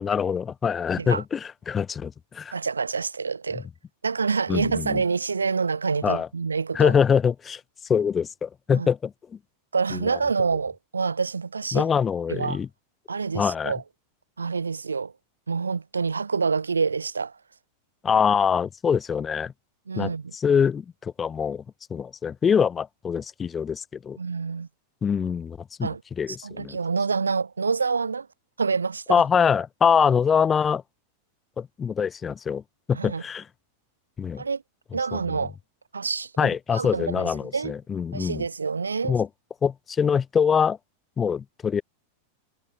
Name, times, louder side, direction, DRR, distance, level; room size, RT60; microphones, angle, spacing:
voice 1, 0.0-2.5 4.5-5.0 6.0-6.3 6.7-7.6 7.9-9.1 9.9-10.0 11.7-12.7 13.3-13.7 18.0-19.5 20.0-21.6 21.9-24.2 25.0-25.9 26.2-26.8 29.1-30.8 31.6-32.6 32.9-33.4 34.2-34.4 35.1-35.2 36.4-38.4 39.0-39.3 39.6-40.8 41.2-41.8, left 7 dB, 20° left, 0.5 m, -24 dB
voice 2, 2.5-3.7 4.0-6.9 8.7-8.9 9.7-11.9 12.3-12.6 13.1-13.8 14.4-15.1 15.5-17.4 19.9-20.4 24.2-24.7 25.8-26.0 26.3-28.3 28.6-29.2 32.9-33.2 34.4-34.6 34.9-35.5 35.9-37.7 38.1-39.2, right 5 dB, 75° right, 0.9 m, -27 dB
figure-of-eight pair, 90°, 0 cm